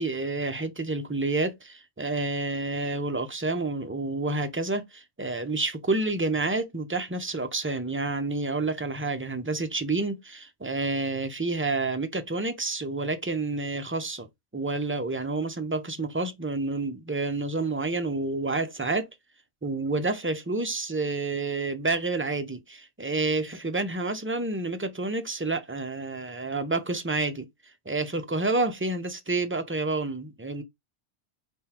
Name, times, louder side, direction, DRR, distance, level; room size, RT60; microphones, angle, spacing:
voice 1, 0.0-14.3 14.5-19.1 19.6-27.4 27.9-30.6, right 3 dB, 15° right, 0.5 m, -29 dB
3.8 x 3.0 x 4.3 m
omnidirectional pair, 1.1 m